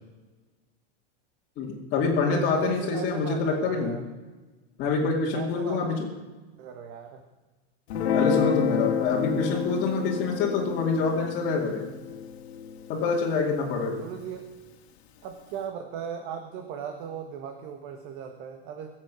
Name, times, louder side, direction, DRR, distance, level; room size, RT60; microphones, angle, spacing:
voice 1, 1.6-4.0 4.8-6.1 8.1-11.9 12.9-14.0, left 4 dB, 35° left, -5 dB, 2.4 m, -26 dB
voice 2, 2.2-4.0 5.3-6.0 6.6-7.2 13.9-14.5 15.2-18.9, right 8 dB, 40° right, 5 dB, 1.4 m, -37 dB
Guitar, 7.9-14.5, left 8 dB, 75° left, 2.0 m, -30 dB
22.5 x 7.8 x 6.3 m, 1.2 s
supercardioid pair, 160°, 32 cm